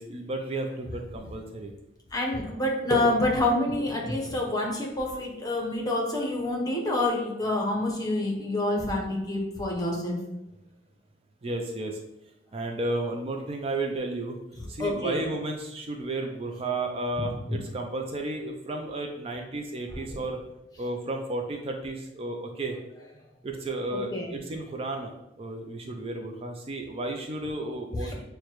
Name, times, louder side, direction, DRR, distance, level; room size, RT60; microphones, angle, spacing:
voice 1, 0.0-1.7 11.4-12.0 12.5-14.4 14.7-20.4 20.8-22.8 23.4-28.2, right 2 dB, 35° right, 3 dB, 0.4 m, -33 dB
voice 2, 2.1-10.2 14.8-15.2 17.2-17.6 20.1-20.2 23.9-24.3 28.0-28.1, left 1 dB, 20° left, 0 dB, 0.8 m, -27 dB
6.4 x 2.2 x 3.0 m, 0.87 s
head